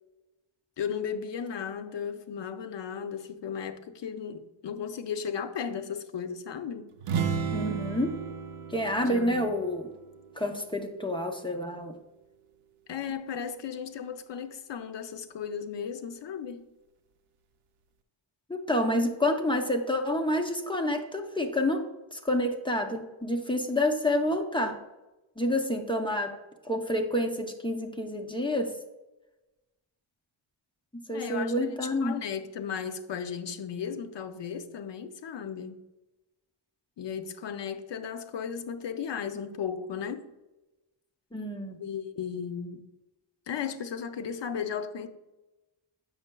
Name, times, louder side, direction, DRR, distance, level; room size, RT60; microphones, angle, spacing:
voice 1, 0.8-6.9 9.0-9.5 12.9-16.6 31.1-35.8 37.0-40.3 41.8-42.9 43.5-45.1, left 7 dB, 60° left, 0.5 m, -35 dB
sound 1, 7.0-10.7, right 6 dB, 85° right, 0.6 m, -34 dB
voice 2, 7.5-8.1 8.7-9.9 10.4-11.9 18.5-21.8 22.1-24.8 25.4-26.3 26.6-28.7 30.9-32.2 41.3-41.8, left 1 dB, 10° left, 0.5 m, -28 dB
7.6 x 6.2 x 2.2 m
wide cardioid pair, 165°, 50 cm